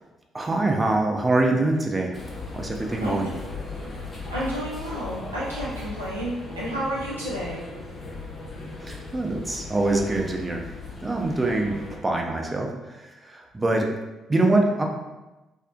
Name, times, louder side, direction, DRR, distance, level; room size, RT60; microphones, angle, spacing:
voice 1, 0.3-2.1 2.5-3.3 8.8-10.6 11.0-13.9 14.3-14.8, right 2 dB, 20° right, 1 dB, 0.4 m, -24 dB
sound 1, 2.1-12.0, left 3 dB, 40° left, 0.5 m, -37 dB
voice 2, 3.0-3.3 4.3-7.6, right 1 dB, 90° right, -9 dB, 0.5 m, -31 dB
2.6 x 2.0 x 2.3 m, 1.1 s
figure-of-eight pair, 45°, 0 cm